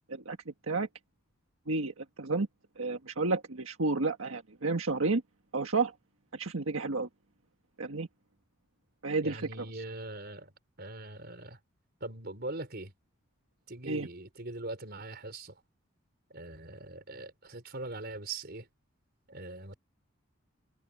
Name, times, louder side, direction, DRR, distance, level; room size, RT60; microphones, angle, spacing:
voice 1, 1.7-2.5 2.8-5.2 5.5-5.9 6.3-7.1 7.8-8.1 9.0-9.4 13.8-14.1, right 3 dB, 85° right, 1.5 m, -31 dB
voice 2, 9.2-10.5 10.8-11.6 12.0-12.9 13.7-15.5 16.3-18.7 19.3-19.8, right 2 dB, 50° right, 4.9 m, -41 dB
head